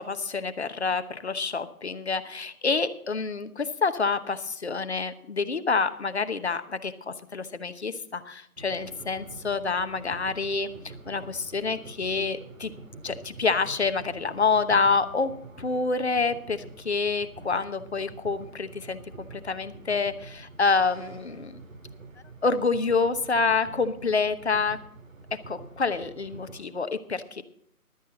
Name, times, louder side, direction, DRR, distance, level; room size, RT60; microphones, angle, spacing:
voice 1, 0.0-10.7 11.1-12.7 13.0-15.3 15.6-21.6 22.4-24.8 25.3-27.4, left 4 dB, 45° left, 11 dB, 1.0 m, -27 dB
sound 1, 8.6-26.6, right 3 dB, 60° right, 2.2 m, -46 dB
15.0 x 12.0 x 3.9 m, 0.70 s
figure-of-eight pair, 155°, 45 cm